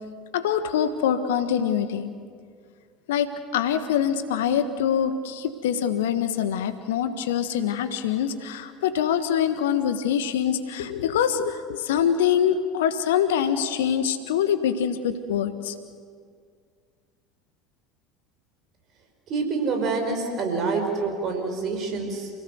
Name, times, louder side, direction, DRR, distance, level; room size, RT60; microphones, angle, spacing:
voice 1, 0.3-2.1 3.1-15.8, left 8 dB, 70° left, 10 dB, 1.4 m, -24 dB
voice 2, 19.3-22.3, right 4 dB, 45° right, 4 dB, 5.2 m, -27 dB
29.0 x 17.5 x 8.1 m, 2.1 s
figure-of-eight pair, 70°, 0 cm